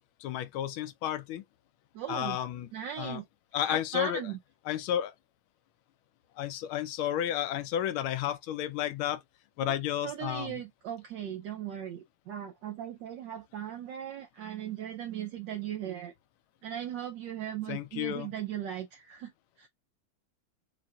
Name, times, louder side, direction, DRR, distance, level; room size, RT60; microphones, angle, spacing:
voice 1, 0.2-1.4 2.1-2.7 3.0-3.2 3.5-4.2 4.7-5.1 6.4-9.2 9.6-10.6 17.7-18.3, left 11 dB, 85° left, 1.5 m, -32 dB
voice 2, 1.9-2.4 2.7-3.2 3.6-4.4 9.6-9.7 10.0-16.1 16.6-19.3 19.6-19.7, right 10 dB, 70° right, 1.2 m, -38 dB
7.5 x 2.6 x 2.3 m
omnidirectional pair, 2.2 m